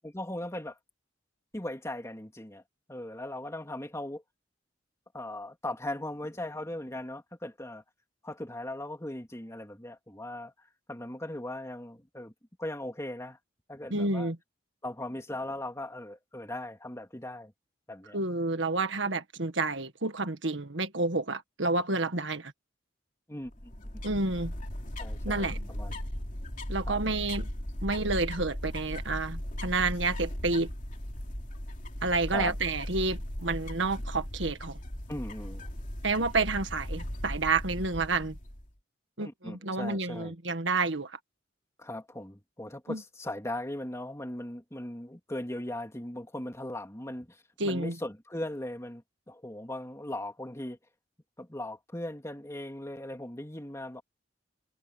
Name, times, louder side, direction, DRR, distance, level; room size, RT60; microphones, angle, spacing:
voice 1, 0.0-0.8 1.5-2.6 2.9-4.2 5.1-7.8 8.2-10.5 10.9-12.3 12.6-13.4 13.7-14.3 14.8-17.5 17.9-18.2 23.3-23.7 25.0-26.0 26.9-27.0 32.3-32.5 35.1-35.7 39.2-40.3 41.8-50.8 51.4-54.0, left 1 dB, 15° left, 2.7 m, -38 dB
voice 2, 13.9-14.4 18.1-22.5 24.0-24.5 25.2-25.6 26.7-27.5 27.8-30.7 32.0-34.8 36.0-38.4 39.2-41.2 42.9-43.0 47.6-48.0, right 3 dB, 70° right, 1.8 m, -29 dB
sound 1, 23.5-38.7, equal, 45° left, 3.0 m, -37 dB
head